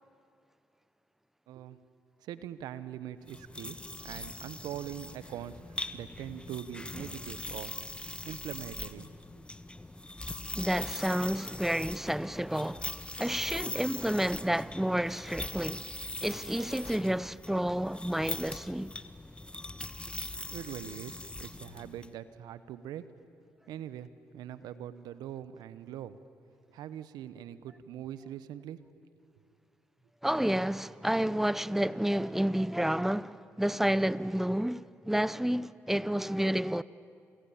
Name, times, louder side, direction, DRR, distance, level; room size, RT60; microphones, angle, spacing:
voice 1, 1.5-1.8 2.2-3.8 4.0-7.8 8.2-9.1 20.1-20.2 20.5-23.0 23.7-26.2 26.7-28.8, right 11 dB, 75° right, 1.1 m, -42 dB
sound 1, 3.2-22.1, left 2 dB, 15° left, 1.6 m, -42 dB
voice 2, 10.5-12.9 13.2-15.9 16.2-18.9 30.2-36.8, right 1 dB, 5° right, 0.8 m, -30 dB
29.0 x 28.5 x 7.3 m
hypercardioid pair, 45°, 7 cm